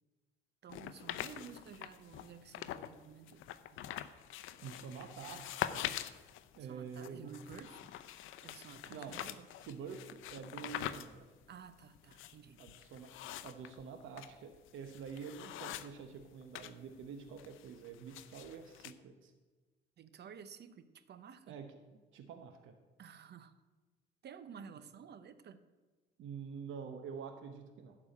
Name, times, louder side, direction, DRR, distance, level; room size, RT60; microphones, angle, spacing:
voice 1, 0.6-3.4 3.7-3.9 6.7-7.9 8.4-9.5 11.5-12.6 20.0-21.5 23.0-23.6 24.2-25.6, right 7 dB, 55° right, 12 dB, 0.9 m, -53 dB
sound 1, 0.7-2.9 3.3-16.7 17.0-18.9, left 12 dB, 85° left, 0.6 m, -44 dB
voice 2, 4.6-5.9 6.5-7.3 8.9-9.2 9.6-11.3 12.6-13.1 13.4-19.3 21.5-21.7 22.1-22.7 26.2-28.0, right 6 dB, 85° right, 7 dB, 1.0 m, -47 dB
11.5 x 4.9 x 8.5 m, 1.3 s
cardioid pair, 90°, 20 cm